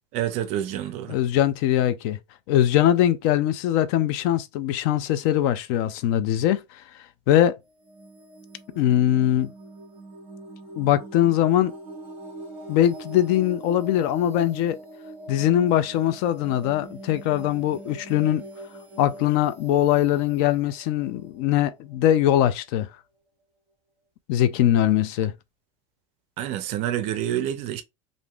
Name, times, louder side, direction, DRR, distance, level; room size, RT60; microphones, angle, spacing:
voice 1, 0.1-1.2 26.4-27.8, right 11 dB, 40° right, 0.4 m, -28 dB
voice 2, 1.1-2.2 2.5-6.6 7.3-7.5 8.8-9.5 10.8-11.7 12.7-14.8 15.3-18.4 19.0-22.9 24.3-25.3, left 12 dB, 50° left, 0.4 m, -21 dB
sound 1, 7.6-22.3, right 2 dB, 10° right, 1.1 m, -42 dB
3.4 x 2.5 x 2.3 m
supercardioid pair, 165°, 17 cm